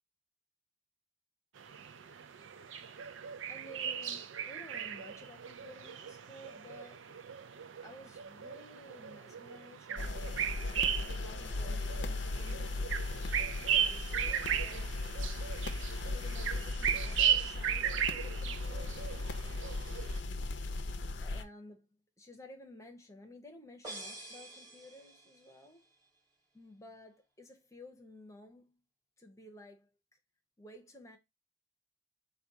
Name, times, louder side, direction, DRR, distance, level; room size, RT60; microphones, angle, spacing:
sound 1, 1.6-20.2, right 9 dB, 75° right, 0.4 m, -36 dB
voice 1, 3.0-7.1 7.8-10.4 11.1-15.0 16.1-19.3 21.2-25.9 26.5-28.8 29.2-29.9 30.6-31.2, left 1 dB, 15° left, 0.7 m, -54 dB
sound 2, 10.0-21.4, left 2 dB, 60° left, 0.5 m, -37 dB
Sabian Cymbal Hit, 23.8-25.6, right 2 dB, 20° right, 2.3 m, -47 dB
4.1 x 2.3 x 4.6 m
head